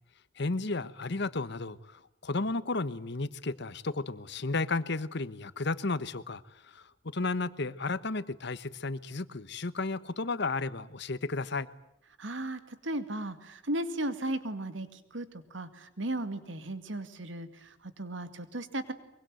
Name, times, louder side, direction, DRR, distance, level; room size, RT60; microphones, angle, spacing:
voice 1, 0.4-11.7, left 3 dB, 65° left, 1.2 m, -33 dB
voice 2, 12.2-18.9, right 1 dB, 80° right, 2.3 m, -36 dB
23.5 x 23.5 x 9.1 m
head